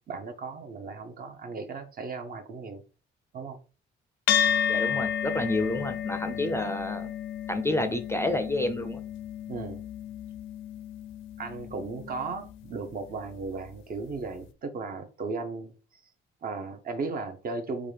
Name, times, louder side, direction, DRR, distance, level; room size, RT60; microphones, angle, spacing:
voice 1, 0.1-2.8 3.3-3.6 6.3-6.4 9.5-9.8 11.4-16.0 16.4-17.9, right 4 dB, 45° right, 0.7 m, -36 dB
sound 1, 4.3-12.9, left 8 dB, 80° left, 0.5 m, -32 dB
voice 2, 4.7-7.1 7.5-9.0, left 1 dB, 15° left, 0.4 m, -29 dB
3.6 x 2.3 x 3.2 m
cardioid pair, 90°, 20 cm